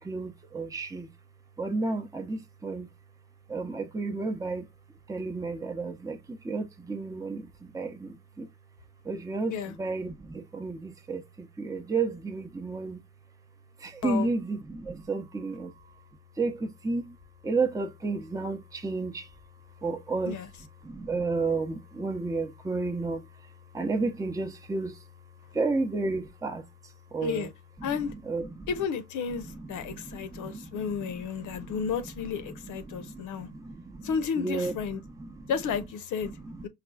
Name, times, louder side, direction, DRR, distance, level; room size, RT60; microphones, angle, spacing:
voice 1, 0.0-1.1 1.6-2.9 3.5-4.7 5.1-8.5 9.0-13.0 13.8-16.0 16.4-17.2 17.4-19.4 19.8-20.4 20.8-25.1 25.5-27.5 27.8-28.7 29.3-31.9 32.2-34.8 35.0-35.5 36.2-36.7, right 3 dB, 10° right, 0.6 m, -33 dB
voice 2, 27.8-28.1 28.7-33.5 34.0-35.0 35.5-36.3 36.6-36.7, left 6 dB, 80° left, 0.8 m, -32 dB
4.9 x 2.3 x 2.2 m
cardioid pair, 90°, 30 cm